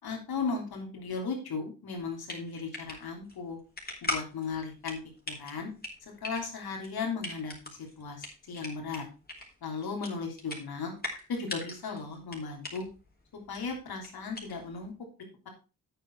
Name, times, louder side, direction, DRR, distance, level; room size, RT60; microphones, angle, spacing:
voice 1, 0.0-3.6 4.0-5.0 5.3-5.7 6.2-9.0 9.6-10.9 11.3-12.8 13.5-14.9, left 4 dB, 85° left, 2 dB, 3.3 m, -36 dB
sound 1, 2.0-14.9, left 2 dB, 25° left, 4.0 m, -42 dB
8.9 x 7.2 x 4.6 m, 0.31 s
cardioid pair, 60°, 36 cm